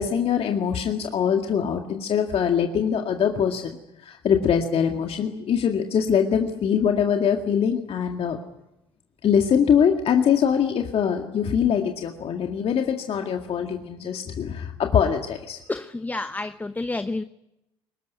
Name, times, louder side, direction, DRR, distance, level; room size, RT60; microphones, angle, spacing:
voice 1, 0.0-3.7 4.0-8.4 9.2-15.6, left 7 dB, 45° left, 4 dB, 2.0 m, -23 dB
voice 2, 15.7-17.2, left 2 dB, 10° left, 13 dB, 0.8 m, -29 dB
23.5 x 20.0 x 9.4 m, 0.89 s
hypercardioid pair, 60°, 13 cm